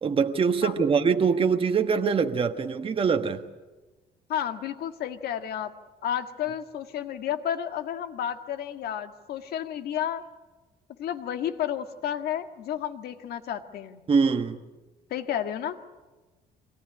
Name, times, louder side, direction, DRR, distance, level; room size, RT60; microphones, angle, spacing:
voice 1, 0.0-3.4 14.1-14.6, right 5 dB, 30° right, 1.3 m, -23 dB
voice 2, 4.3-5.7 6.0-10.2 11.0-14.0 15.1-15.8, left 10 dB, 70° left, 1.7 m, -31 dB
24.0 x 18.0 x 9.9 m
cardioid pair, 110°, 17 cm